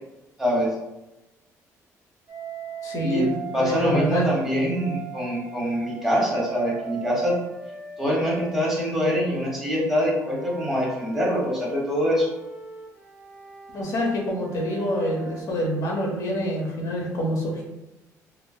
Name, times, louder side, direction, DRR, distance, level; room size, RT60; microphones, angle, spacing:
voice 1, 0.4-0.8 3.0-3.3 3.5-7.3 8.0-12.3, equal, 5° right, -5 dB, 1.1 m, -24 dB
Wind instrument woodwind instrument, 2.3-4.1 4.7-9.5 10.2-15.4, right 7 dB, 25° right, 1.0 m, -40 dB
voice 2, 2.8-4.2 13.7-17.6, equal, 60° left, -1 dB, 0.8 m, -26 dB
Guitar, 3.7-4.9, left 3 dB, 50° right, 0.9 m, -37 dB
3.3 x 2.1 x 2.2 m, 0.97 s
cardioid pair, 105°, 6 cm